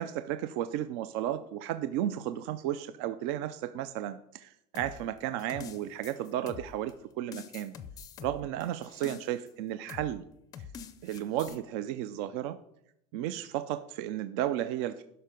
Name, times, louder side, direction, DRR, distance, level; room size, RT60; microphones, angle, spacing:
voice 1, 0.0-7.7 8.2-10.2 11.0-12.6 13.1-15.0, right 12 dB, 45° right, 12 dB, 0.4 m, -33 dB
sound 1, 4.7-6.9 7.3-9.5 9.9-10.1 10.5-11.6, left 7 dB, 20° left, 0.5 m, -45 dB
12.0 x 5.6 x 5.1 m, 0.78 s
supercardioid pair, 175°, 18 cm